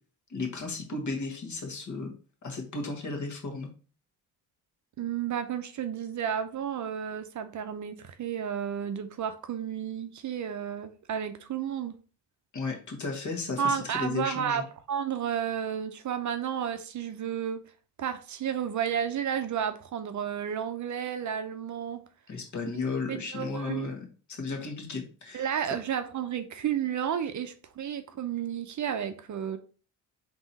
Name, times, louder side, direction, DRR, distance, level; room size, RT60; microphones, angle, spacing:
voice 1, 0.3-2.1 2.4-3.7 12.5-14.6 22.3-25.5, left 3 dB, 45° left, 1.4 m, -34 dB
voice 2, 5.0-11.9 13.6-17.6 18.0-22.0 23.1-23.9 25.3-29.6, right 8 dB, 45° right, 0.6 m, -32 dB
3.7 x 2.9 x 4.1 m
supercardioid pair, 65°, 40 cm